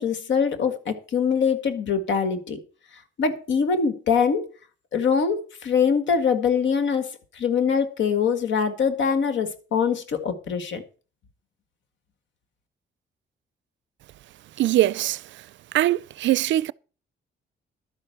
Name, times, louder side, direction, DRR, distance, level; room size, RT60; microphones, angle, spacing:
voice 1, 0.0-2.6 3.2-4.5 4.9-10.8, left 6 dB, 70° left, 1.8 m, -23 dB
voice 2, 14.6-15.2 15.7-16.7, right 14 dB, 70° right, 0.4 m, -21 dB
12.0 x 5.5 x 7.9 m
cardioid pair, 90°, 20 cm